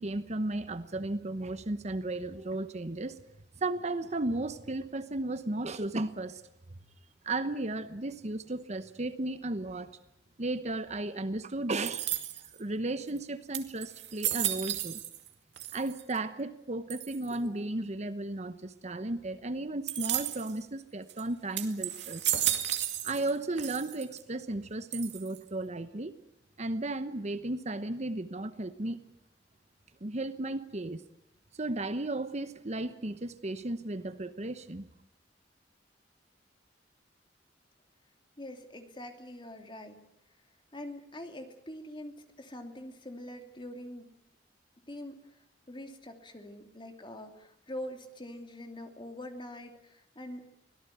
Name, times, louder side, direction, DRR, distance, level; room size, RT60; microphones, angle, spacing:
voice 1, 0.0-3.2 3.6-6.4 7.2-9.9 10.4-12.0 12.6-15.0 15.7-22.3 23.0-26.1 26.6-29.0 30.0-31.0 31.6-34.9, right 2 dB, 40° right, 12 dB, 1.0 m, -34 dB
sound 1, 11.9-12.6 13.2-13.3 13.5-15.3 15.6-16.2 16.9-17.3 19.9-20.6 21.1-21.2 21.6-23.3 23.6-24.2 24.9-25.5, right 12 dB, 75° right, 2.3 m, -33 dB
voice 2, 38.4-40.0 40.7-44.1 44.9-50.5, left 1 dB, 25° left, 5 dB, 2.9 m, -44 dB
24.5 x 18.0 x 9.4 m, 0.81 s
head